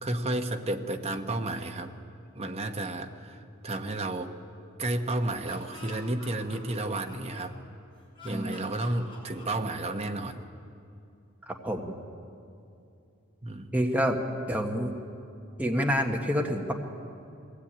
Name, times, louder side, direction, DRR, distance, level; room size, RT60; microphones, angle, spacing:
voice 1, 0.0-1.9 2.3-4.3 4.8-7.5 8.2-10.4 13.4-13.8, right 2 dB, 30° right, 5 dB, 1.1 m, -32 dB
Laughter, 5.2-7.7 8.1-10.2, left 2 dB, 25° left, 6.8 m, -48 dB
voice 2, 11.5-12.0 13.7-14.2 14.5-14.9 15.6-16.7, equal, 10° right, 1 dB, 1.4 m, -28 dB
22.0 x 16.5 x 8.8 m, 2.6 s
head